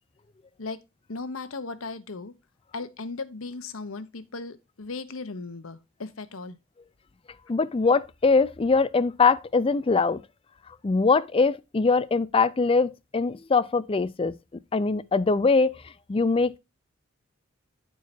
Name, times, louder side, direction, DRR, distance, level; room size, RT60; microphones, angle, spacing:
voice 1, 1.1-2.3 2.7-6.6, left 3 dB, 85° left, 1.0 m, -37 dB
voice 2, 7.5-10.2 10.8-14.4 14.7-15.7 16.1-16.6, left 4 dB, 25° left, 0.4 m, -22 dB
10.5 x 4.6 x 4.3 m
head